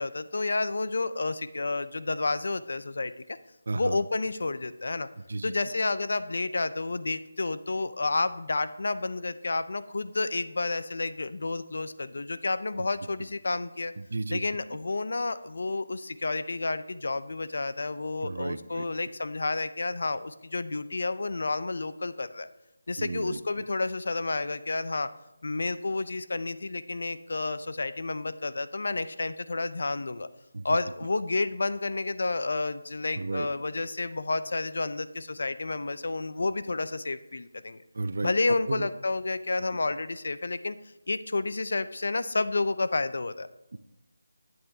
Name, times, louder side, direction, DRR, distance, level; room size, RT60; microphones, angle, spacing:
voice 1, 0.0-3.4 3.7-5.1 5.4-13.9 14.3-22.5 22.9-25.1 25.4-30.3 30.6-37.8 38.2-40.8 41.1-43.5, left 3 dB, 60° left, 13 dB, 0.4 m, -30 dB
voice 2, 3.7-4.0 5.3-5.5 12.8-12.9 14.0-14.4 18.2-18.9 23.0-23.4 30.5-30.8 33.2-33.5 37.9-38.3 38.7-38.9 43.7-43.8, right 3 dB, 55° right, 13 dB, 0.5 m, -33 dB
12.0 x 7.9 x 2.7 m, 0.90 s
figure-of-eight pair, 170°, 0 cm